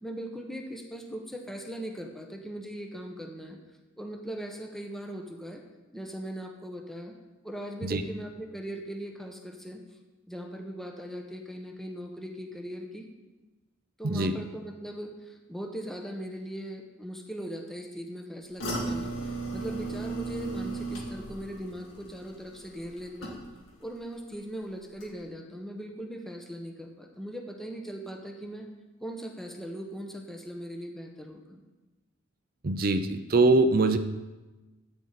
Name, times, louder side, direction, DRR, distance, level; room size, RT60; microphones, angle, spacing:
voice 1, 0.0-3.6 4.0-5.6 5.9-7.2 7.4-9.8 10.3-13.1 14.0-23.4 23.8-28.7 29.0-31.6, equal, ahead, 2 dB, 1.2 m, -39 dB
voice 2, 14.0-14.3 32.6-34.0, right 2 dB, 45° right, 9 dB, 0.7 m, -23 dB
sound 1, 18.6-23.8 24.1-24.6 25.0-25.1, right 2 dB, 75° left, 2.3 m, -36 dB
13.5 x 9.2 x 4.1 m, 1.1 s
head